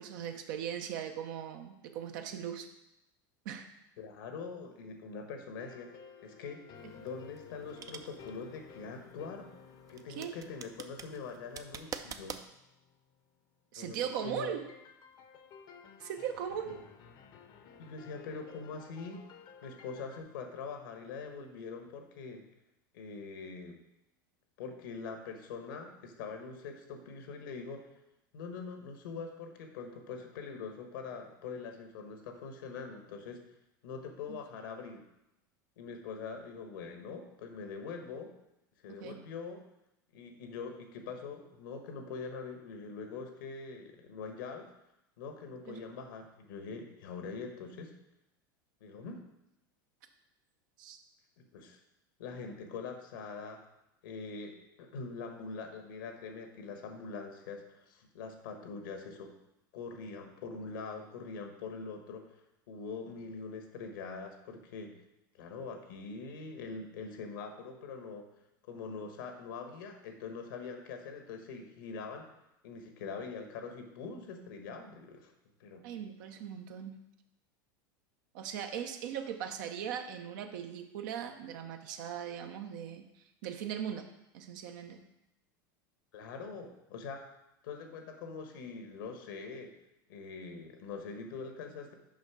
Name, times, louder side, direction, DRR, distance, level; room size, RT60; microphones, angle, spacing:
voice 1, 0.0-2.7 3.4-3.7 10.2-10.4 13.7-14.6 16.0-16.8 34.3-34.4 39.0-39.2 45.7-45.8 50.8-51.0 75.8-77.0 78.3-83.0 83.4-84.1 84.3-85.0, right 9 dB, 65° right, 6 dB, 0.9 m, -39 dB
voice 2, 4.0-5.9 6.2-6.6 6.9-9.5 9.9-12.4 13.8-14.5 17.8-19.2 19.6-22.5 22.9-23.8 24.6-27.9 28.3-33.4 33.8-35.1 35.8-38.3 38.8-39.6 40.1-44.7 45.2-47.9 48.8-49.2 51.4-51.8 52.2-53.6 54.0-59.3 59.7-62.3 62.7-65.0 65.3-68.3 68.6-72.3 72.6-75.3 75.6-75.8 86.1-87.2 87.6-89.7 90.1-91.9, left 4 dB, 75° left, 5 dB, 1.3 m, -43 dB
sound 1, 5.6-13.3 14.2-20.2, left 7 dB, 45° left, 0.8 m, -54 dB
sound 2, 6.8-12.5, right 7 dB, 30° right, 0.5 m, -46 dB
6.3 x 5.3 x 4.9 m, 0.87 s
hypercardioid pair, 95°, 11 cm